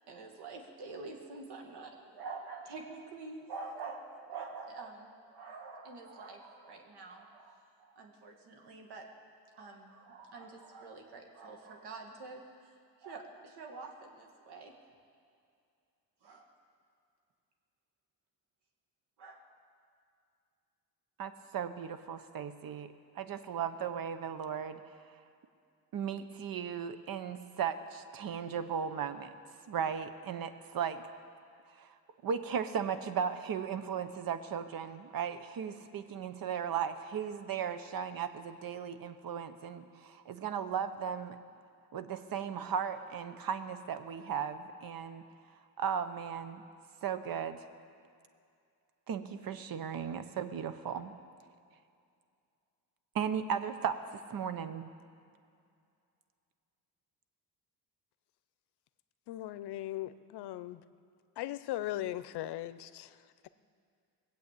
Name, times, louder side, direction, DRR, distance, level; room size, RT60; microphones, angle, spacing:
voice 1, 0.1-9.1 9.5-12.7 13.0-14.7 16.2-16.5 19.2-19.5, right 4 dB, 75° right, 2 dB, 2.2 m, -46 dB
voice 2, 21.2-24.8 25.9-29.4 29.7-31.0 31.8-31.9 32.2-41.4 41.9-45.2 45.8-46.6 47.0-47.6 49.1-51.1 53.1-54.9, right 7 dB, 60° right, 11 dB, 1.0 m, -36 dB
voice 3, 59.3-60.8 61.4-63.5, left 14 dB, 75° left, 14 dB, 0.7 m, -39 dB
20.5 x 8.0 x 8.4 m, 2.4 s
cardioid pair, 105°, 40 cm